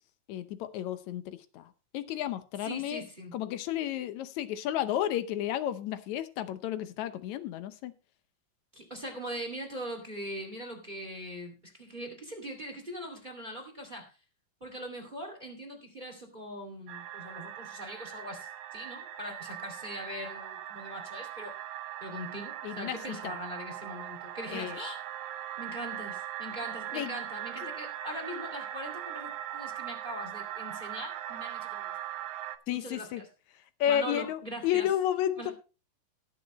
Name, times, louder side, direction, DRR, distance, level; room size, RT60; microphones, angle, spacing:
voice 1, 0.3-3.0 3.3-7.9 22.6-23.4 24.5-24.8 26.9-27.2 27.6-27.7 32.7-33.2 33.8-35.5, left 11 dB, 70° left, 12 dB, 1.8 m, -32 dB
voice 2, 2.6-3.3 8.7-14.1 14.6-21.5 22.0-25.0 25.6-31.9 32.7-33.3 33.9-34.9 35.4-35.5, equal, 15° right, 4 dB, 2.0 m, -41 dB
sound 1, 16.9-32.6, right 11 dB, 70° right, 2.0 m, -40 dB
18.0 x 8.0 x 3.1 m, 0.32 s
omnidirectional pair, 4.0 m